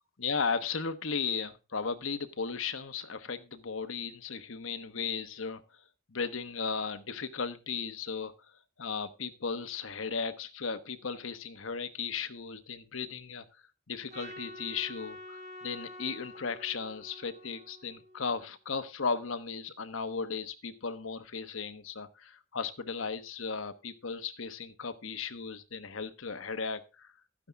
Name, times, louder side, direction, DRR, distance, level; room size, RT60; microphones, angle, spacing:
voice 1, 0.2-5.6 6.1-8.3 8.8-13.4 13.9-27.1, left 5 dB, 85° left, 10 dB, 1.1 m, -36 dB
Trumpet, 14.1-18.5, left 1 dB, 35° right, 1.5 m, -48 dB
12.5 x 9.8 x 3.4 m, 0.28 s
head